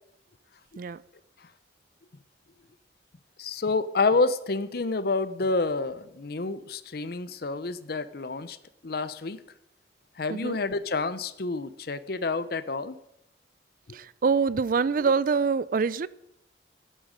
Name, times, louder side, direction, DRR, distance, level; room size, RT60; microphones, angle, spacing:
voice 1, 3.4-8.6 8.8-9.4 10.2-12.9, left 3 dB, 60° left, 0.7 m, -28 dB
voice 2, 13.9-16.1, right 5 dB, 50° right, 0.4 m, -25 dB
13.0 x 11.0 x 5.2 m
head